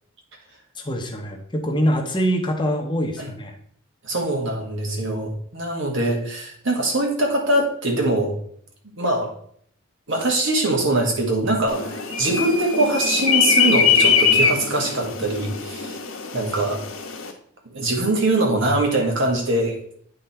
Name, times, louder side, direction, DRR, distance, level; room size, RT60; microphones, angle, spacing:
voice 1, 0.8-3.6, equal, 20° left, 2 dB, 0.9 m, -24 dB
voice 2, 4.0-8.3 9.0-9.3 10.1-16.0 16.3-16.8 17.7-19.8, right 2 dB, 60° right, 1 dB, 1.8 m, -22 dB
sound 1, 11.7-17.3, left 6 dB, 80° left, 1.1 m, -22 dB
9.0 x 3.8 x 4.3 m, 0.63 s
head